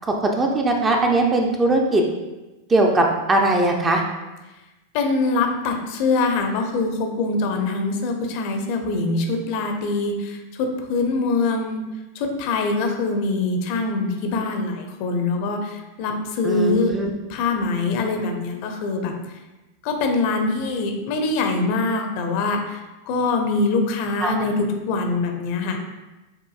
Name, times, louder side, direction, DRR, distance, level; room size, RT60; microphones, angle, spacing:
voice 1, 0.0-2.0 2.7-4.0 16.4-17.1 24.2-24.4, right 2 dB, 20° right, 1 dB, 0.5 m, -20 dB
voice 2, 4.9-11.8 12.1-16.9 17.3-19.1 19.8-25.8, left 3 dB, 45° left, 4 dB, 0.6 m, -23 dB
6.6 x 2.5 x 2.4 m, 1.1 s
figure-of-eight pair, 90°, 0 cm